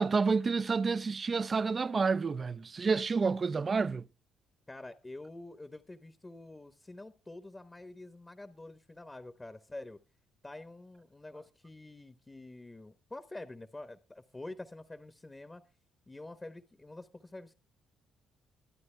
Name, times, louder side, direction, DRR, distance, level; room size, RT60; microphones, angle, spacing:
voice 1, 0.0-4.1, right 4 dB, 35° right, 0.6 m, -29 dB
voice 2, 4.7-10.0 10.4-15.6 16.1-17.6, left 2 dB, 20° left, 1.1 m, -47 dB
23.5 x 9.3 x 3.3 m
cardioid pair, 90°, 0 cm